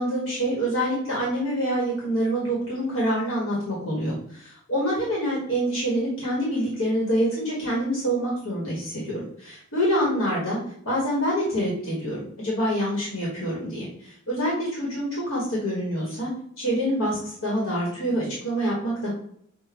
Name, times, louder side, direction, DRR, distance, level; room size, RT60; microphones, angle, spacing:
voice 1, 0.0-10.6 10.8-16.3 16.6-19.1, equal, 90° left, -5 dB, 1.6 m, -26 dB
6.4 x 2.6 x 3.0 m, 0.67 s
head